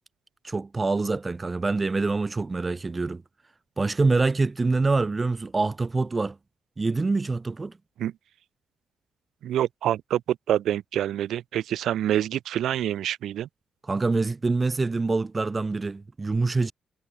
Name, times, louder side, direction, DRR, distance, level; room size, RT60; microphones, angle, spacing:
voice 1, 0.4-3.2 3.8-6.4 6.8-7.8 13.9-16.7, right 3 dB, 20° right, 0.5 m, -25 dB
voice 2, 9.4-13.5, right 11 dB, 80° right, 0.9 m, -26 dB
cardioid pair, 150°, 0 cm